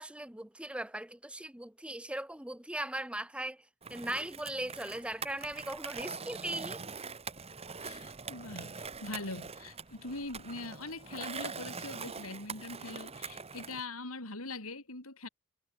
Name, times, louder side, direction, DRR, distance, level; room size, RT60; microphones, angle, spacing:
voice 1, 0.0-3.6 3.9-6.8, right 1 dB, 5° right, 1.0 m, -39 dB
Skateboard, 3.8-13.8, right 5 dB, 30° right, 1.6 m, -43 dB
voice 2, 7.8-15.3, left 2 dB, 85° left, 5.5 m, -42 dB
head